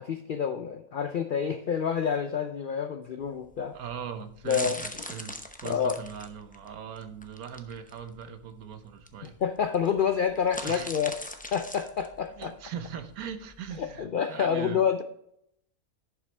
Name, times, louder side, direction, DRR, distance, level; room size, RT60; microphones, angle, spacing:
voice 1, 0.0-3.7 4.5-4.8 5.6-6.0 9.4-11.1 11.5-12.5 13.8-15.0, left 7 dB, 70° left, 8 dB, 0.4 m, -28 dB
sound 1, 3.2-14.0, left 1 dB, 10° left, 0.4 m, -42 dB
voice 2, 3.7-5.4 5.6-9.4 10.6-10.9 12.4-14.8, right 7 dB, 85° right, 9 dB, 1.3 m, -40 dB
11.0 x 6.1 x 3.3 m, 0.74 s
omnidirectional pair, 1.5 m